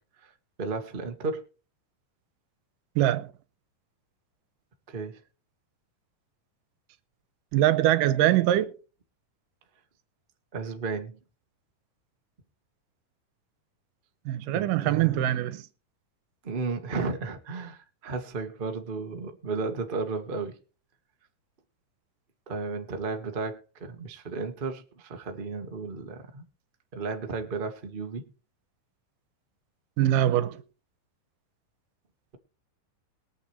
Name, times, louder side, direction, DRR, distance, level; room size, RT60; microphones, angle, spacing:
voice 1, 0.6-1.4 4.9-5.2 10.5-11.2 14.5-15.3 16.4-20.6 22.5-26.4 26.9-28.3, right 4 dB, 65° right, 0.5 m, -33 dB
voice 2, 3.0-3.3 7.5-8.7 14.3-15.6 30.0-30.6, right 13 dB, 85° right, 2.4 m, -23 dB
22.0 x 7.9 x 3.2 m
omnidirectional pair, 3.8 m